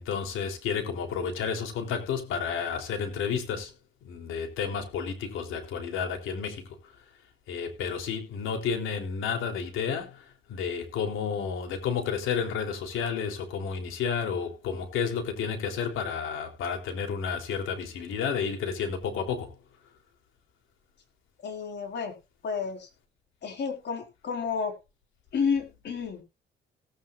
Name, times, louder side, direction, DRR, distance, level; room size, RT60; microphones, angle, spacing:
voice 1, 0.0-3.7 4.0-6.9 7.5-19.6, left 6 dB, 90° left, 3.5 m, -31 dB
voice 2, 21.4-22.1 22.4-22.9 23.4-24.8 25.3-26.2, left 6 dB, 60° left, 4.4 m, -31 dB
18.0 x 9.3 x 2.5 m
cardioid pair, 90°, 20 cm